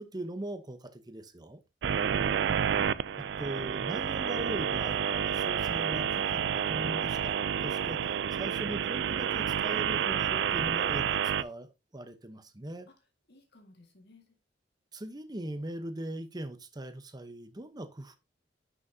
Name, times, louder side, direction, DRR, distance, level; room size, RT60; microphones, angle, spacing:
voice 1, 0.0-1.6 3.4-12.9 14.9-18.2, right 1 dB, 20° right, 0.9 m, -40 dB
sound 1, 1.8-11.4, right 8 dB, 65° right, 0.4 m, -29 dB
voice 2, 1.9-3.0 12.9-13.0 13.3-14.4, left 1 dB, 60° left, 1.9 m, -55 dB
10.5 x 6.2 x 2.8 m
head